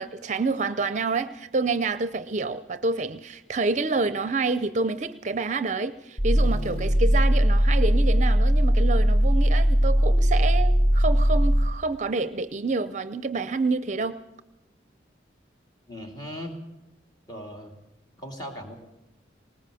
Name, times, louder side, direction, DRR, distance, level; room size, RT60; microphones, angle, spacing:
voice 1, 0.0-14.2, right 3 dB, 40° right, 12 dB, 0.6 m, -28 dB
sound 1, 6.2-11.8, equal, 45° left, 5.3 m, -20 dB
voice 2, 15.9-16.6 17.3-17.7 18.2-18.8, equal, 25° left, 3 dB, 2.9 m, -38 dB
19.5 x 19.5 x 7.0 m, 0.93 s
head